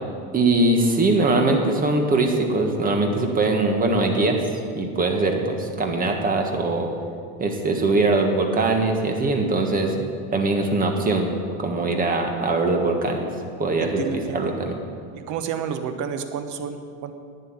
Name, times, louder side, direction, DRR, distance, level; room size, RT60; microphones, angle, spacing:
voice 1, 0.3-4.4 4.7-6.9 7.4-9.9 10.3-11.3 11.6-13.3 13.6-14.8, right 2 dB, 20° right, 3 dB, 1.5 m, -21 dB
voice 2, 13.8-14.5 15.1-17.1, right 7 dB, 40° right, 8 dB, 1.2 m, -30 dB
12.0 x 9.1 x 8.8 m, 2.2 s
supercardioid pair, 155°, 44 cm